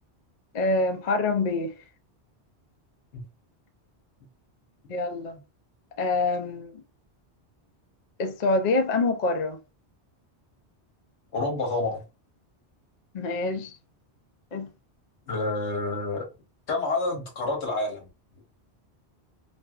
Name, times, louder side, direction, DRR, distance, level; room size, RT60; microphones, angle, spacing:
voice 1, 0.5-1.8 4.9-5.4 6.0-6.8 8.2-9.6 13.1-13.8 14.5-14.7, left 3 dB, 55° left, 0.5 m, -26 dB
voice 2, 11.3-12.0 15.3-16.3 16.7-18.1, left 2 dB, 80° left, 1.3 m, -28 dB
3.3 x 2.5 x 2.3 m
omnidirectional pair, 1.1 m